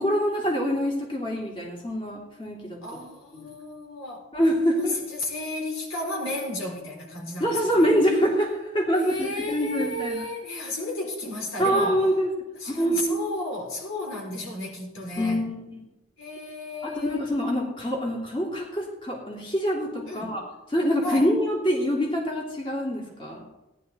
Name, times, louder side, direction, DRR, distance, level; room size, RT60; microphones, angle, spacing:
voice 1, 0.0-2.8 3.3-3.5 4.3-5.0 7.4-10.2 11.6-12.3 12.6-13.1 15.2-15.8 16.8-20.4 20.7-23.4, equal, 25° left, -2 dB, 2.8 m, -25 dB
voice 2, 2.8-4.3 4.7-7.9 8.9-12.0 12.5-15.4 16.2-17.3 20.0-20.4 21.0-21.3, left 1 dB, 85° left, 0 dB, 4.2 m, -33 dB
18.0 x 11.0 x 4.1 m, 0.99 s
head